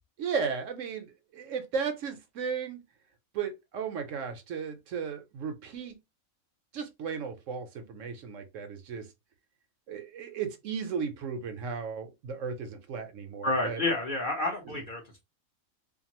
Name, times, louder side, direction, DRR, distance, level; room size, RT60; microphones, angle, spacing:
voice 1, 0.2-2.8 3.3-6.0 6.7-9.1 9.9-13.8 14.7-14.8, right 6 dB, 70° right, 0.9 m, -35 dB
voice 2, 13.4-15.2, left 2 dB, 50° left, 0.7 m, -30 dB
2.6 x 2.4 x 2.8 m
omnidirectional pair, 1.5 m